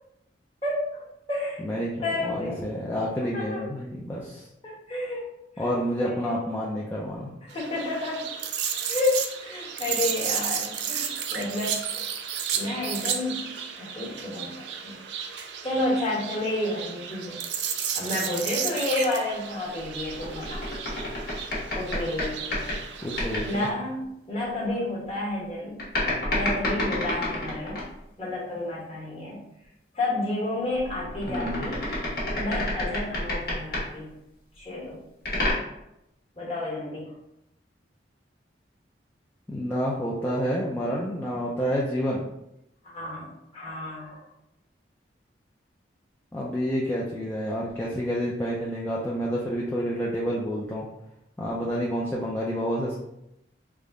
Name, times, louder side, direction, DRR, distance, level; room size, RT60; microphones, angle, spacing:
voice 1, 0.6-1.6 2.0-2.6 3.3-3.6 4.6-5.2 5.6-5.7 6.0-6.3 7.4-8.3 8.9-12.0 12.5-15.0 15.3-17.4 17.9-21.0 21.2-21.4 21.7-22.7 23.4-25.8 26.3-27.8 28.2-29.5 29.9-31.9 32.4-34.1 34.6-35.0 36.3-37.1 42.8-44.2, left 2 dB, 30° left, -6 dB, 1.3 m, -31 dB
voice 2, 1.6-4.5 5.6-7.3 23.0-23.7 31.3-31.7 39.5-42.2 46.3-50.9 51.4-53.0, equal, 10° left, -6 dB, 0.4 m, -29 dB
sound 1, 7.5-23.7, right 7 dB, 70° right, 0.4 m, -33 dB
sound 2, 19.8-22.8 23.2-23.5 25.8-28.0 30.8-33.9 35.2-35.5, left 1 dB, 55° left, 1.3 m, -29 dB
3.5 x 2.1 x 3.6 m, 0.84 s
head